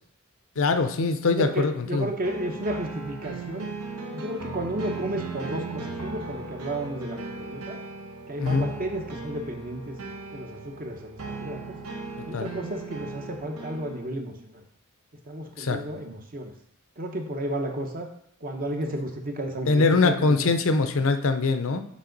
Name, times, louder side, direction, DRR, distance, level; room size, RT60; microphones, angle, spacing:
voice 1, 0.6-2.1 8.4-8.7 12.3-12.5 15.6-15.8 19.7-21.8, left 3 dB, 60° left, 9 dB, 0.6 m, -23 dB
voice 2, 1.3-3.7 4.1-7.8 8.3-10.0 10.3-11.8 12.3-14.6 15.3-16.5 17.0-18.1 18.4-20.4, right 1 dB, 40° right, 4 dB, 0.8 m, -33 dB
sound 1, 2.2-14.1, right 3 dB, 75° right, 1.0 m, -37 dB
7.2 x 4.4 x 3.9 m, 0.69 s
head